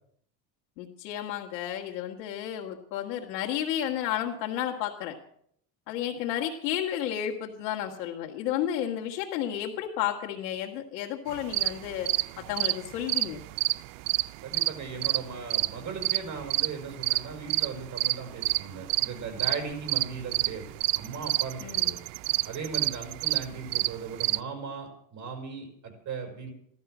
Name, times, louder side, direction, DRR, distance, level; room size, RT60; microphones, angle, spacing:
voice 1, 0.8-5.2 5.9-12.1 12.4-13.4 21.6-22.0, left 10 dB, 80° left, -3 dB, 2.1 m, -32 dB
sound 1, 11.3-24.4, right 20 dB, 70° right, 0.6 m, -28 dB
voice 2, 14.4-22.0 22.4-26.5, right 5 dB, 35° right, 5 dB, 5.1 m, -38 dB
15.5 x 12.5 x 6.2 m, 0.67 s
supercardioid pair, 115°, 48 cm